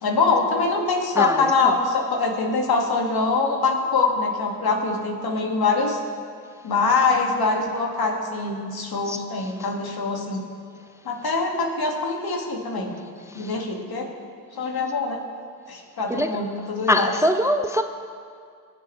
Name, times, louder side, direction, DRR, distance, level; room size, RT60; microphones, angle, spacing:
voice 1, 0.0-6.0 6.6-10.4 11.1-13.0 13.3-14.1 14.5-15.2 15.7-17.1, left 4 dB, 60° left, 1 dB, 2.0 m, -23 dB
voice 2, 1.2-1.7 9.1-9.2 13.3-13.6 16.1-16.4 16.9-17.8, equal, 5° right, 8 dB, 0.4 m, -23 dB
20.0 x 7.3 x 3.2 m, 2.2 s
hypercardioid pair, 40°, 42 cm